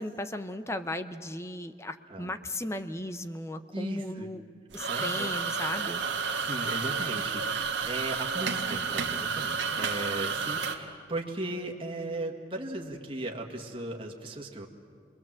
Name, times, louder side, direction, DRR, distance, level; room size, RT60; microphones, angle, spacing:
voice 1, 0.0-4.4 4.7-6.0, left 1 dB, 15° left, 9 dB, 0.7 m, -36 dB
voice 2, 3.7-4.3 4.9-5.4 6.4-14.7, right 2 dB, 30° right, 0 dB, 2.0 m, -37 dB
sound 1, 4.7-10.8, right 5 dB, 75° right, 1.7 m, -31 dB
27.0 x 22.0 x 7.6 m, 2.2 s
head